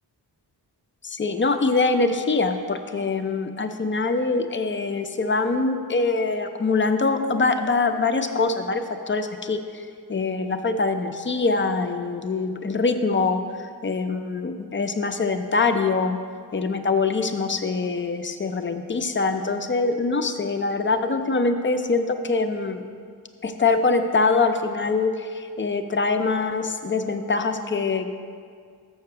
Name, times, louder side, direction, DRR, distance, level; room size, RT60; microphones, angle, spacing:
voice 1, 1.0-9.6 10.1-13.4 13.8-16.2 16.5-22.8 23.4-28.1, left 3 dB, 30° left, 7 dB, 0.5 m, -24 dB
7.1 x 5.8 x 6.6 m, 2.1 s
wide cardioid pair, 130°, 40 cm